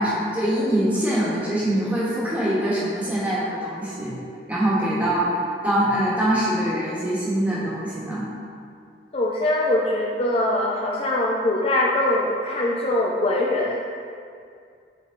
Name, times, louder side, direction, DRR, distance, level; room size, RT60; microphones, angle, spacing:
voice 1, 0.0-4.1 4.5-5.3 5.6-8.3, right 1 dB, 10° right, -9 dB, 1.5 m, -23 dB
voice 2, 9.1-13.8, left 1 dB, 35° left, -3 dB, 0.4 m, -22 dB
7.2 x 3.8 x 3.9 m, 2.3 s
head